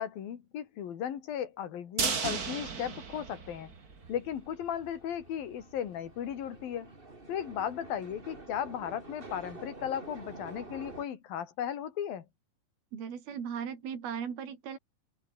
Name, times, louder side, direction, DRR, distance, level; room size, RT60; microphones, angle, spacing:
voice 1, 0.0-3.7 4.1-6.9 7.3-12.3, left 9 dB, 70° left, 4.2 m, -36 dB
sound 1, 2.0-4.1 4.5-4.6 4.9-5.0, right 5 dB, 35° right, 1.6 m, -34 dB
sound 2, 3.2-11.0, right 2 dB, 15° right, 2.6 m, -49 dB
voice 2, 12.9-14.8, right 7 dB, 75° right, 5.5 m, -37 dB
omnidirectional pair, 4.4 m